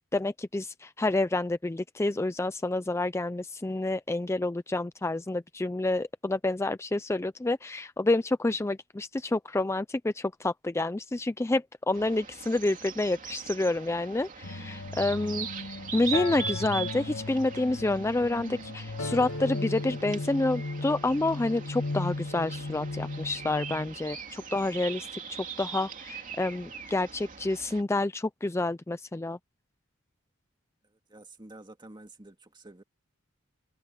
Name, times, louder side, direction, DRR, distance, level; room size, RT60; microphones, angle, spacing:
voice 1, 0.1-25.1 25.6-29.4, left 2 dB, 15° left, 0.4 m, -29 dB
sound 1, 11.9-27.8, right 7 dB, 40° right, 2.9 m, -41 dB
sound 2, 14.4-23.9, left 2 dB, 75° left, 2.1 m, -36 dB
voice 2, 31.1-32.8, right 2 dB, 20° right, 2.3 m, -49 dB
head